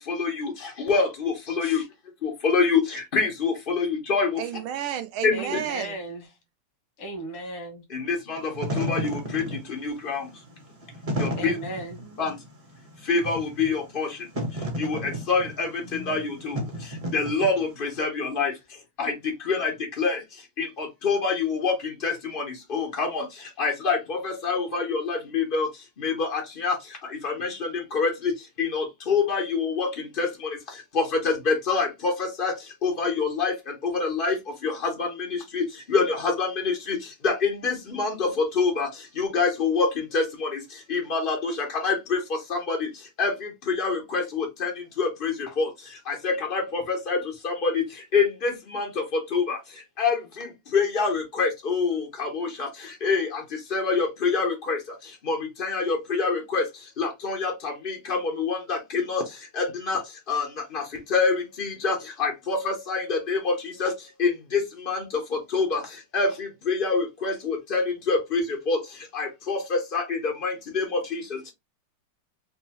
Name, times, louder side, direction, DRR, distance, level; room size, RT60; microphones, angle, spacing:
voice 1, 0.0-1.8 2.2-4.4 5.2-5.6 7.9-10.3 11.2-11.6 12.2-12.4 13.1-14.2 14.8-16.6 17.1-18.5 19.0-19.1 19.4-19.7 20.0-20.2 20.6-23.2 23.6-25.7 26.0-26.8 27.2-30.6 30.9-32.6 32.8-34.4 34.6-37.0 37.2-38.9 39.2-40.6 40.9-42.9 43.2-45.7 46.1-47.2 47.4-47.8 48.1-49.6 50.0-53.4 53.7-54.8 55.2-56.7 57.0-59.2 59.5-60.0 60.3-60.5 60.7-60.8 61.1-63.9 64.2-65.8 66.1-68.8 69.1-71.4, left 4 dB, 65° left, 0.5 m, -26 dB
voice 2, 4.4-5.9, right 10 dB, 75° right, 1.3 m, -31 dB
voice 3, 5.3-6.3 7.0-7.8 11.4-12.0, right 1 dB, 80° left, 2.2 m, -35 dB
Wind / Fire, 8.4-17.9, equal, 30° right, 0.6 m, -33 dB
5.1 x 2.3 x 2.8 m
omnidirectional pair, 2.4 m